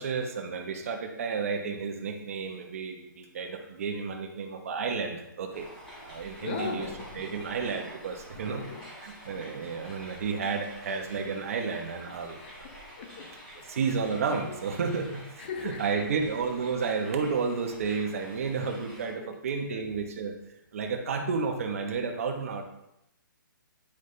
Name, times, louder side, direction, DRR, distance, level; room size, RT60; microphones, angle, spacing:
voice 1, 0.0-5.7 6.0-6.9 7.1-8.7 9.0-12.6 13.7-20.3 20.7-22.6, right 5 dB, 40° right, 1.1 m, -32 dB
sound 1, 5.5-19.1, equal, 5° left, 2.1 m, -48 dB
voice 2, 6.4-7.3 8.3-8.9 10.1-10.2 10.4-10.6 12.4-13.7 15.4-16.1 19.2-19.4 19.7-19.9, left 5 dB, 30° left, 0.7 m, -39 dB
10.0 x 5.5 x 3.3 m
hypercardioid pair, 170°, 11 cm